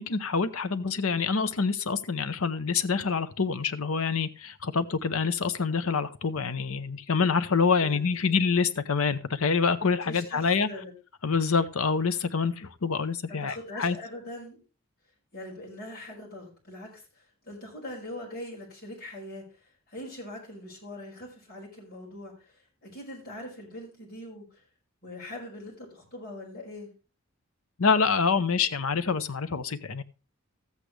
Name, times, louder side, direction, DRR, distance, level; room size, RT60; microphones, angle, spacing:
voice 1, 0.0-10.7 11.2-14.0 27.8-30.0, left 5 dB, 75° left, 0.8 m, -26 dB
voice 2, 7.8-8.2 10.1-10.9 13.3-14.6 15.3-19.6 19.9-22.6 22.8-24.5 25.0-26.9, left 1 dB, 45° left, 5.5 m, -42 dB
14.0 x 8.3 x 3.3 m
head